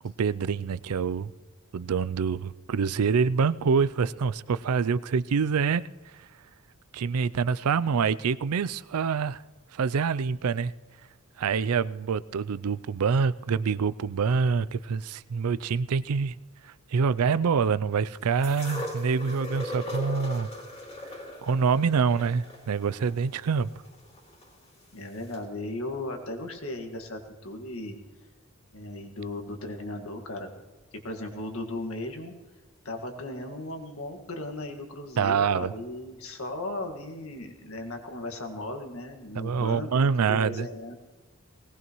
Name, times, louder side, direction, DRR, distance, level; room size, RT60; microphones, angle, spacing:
voice 1, 0.0-1.3 1.7-5.8 6.9-9.4 9.7-10.7 11.4-16.3 16.9-20.5 21.4-23.7 35.2-35.7 39.4-40.7, right 5 dB, 85° right, 0.4 m, -26 dB
sound 1, 18.4-24.5 25.3-25.4, left 1 dB, 30° left, 2.6 m, -39 dB
voice 2, 24.9-28.0 28.7-30.5 30.9-32.3 32.8-40.9, left 1 dB, 70° left, 1.8 m, -36 dB
20.0 x 18.0 x 3.1 m
head